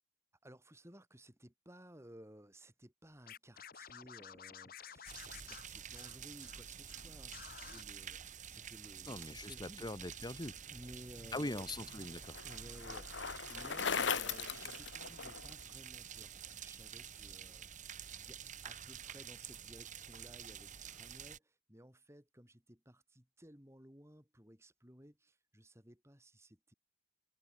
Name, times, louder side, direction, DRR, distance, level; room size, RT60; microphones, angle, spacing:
voice 1, 0.4-9.9 10.7-11.7 12.4-26.7, equal, 15° right, 5.9 m, -57 dB
Scratching (performance technique), 3.3-6.6 6.9-7.0 7.3-7.8, left 8 dB, 50° left, 1.5 m, -52 dB
sound 1, 5.1-21.4, right 8 dB, 40° right, 2.4 m, -49 dB
voice 2, 9.1-10.6 11.3-12.4, left 1 dB, 20° left, 1.8 m, -42 dB
Bicycle, 11.2-15.6, left 6 dB, 75° left, 1.3 m, -39 dB
head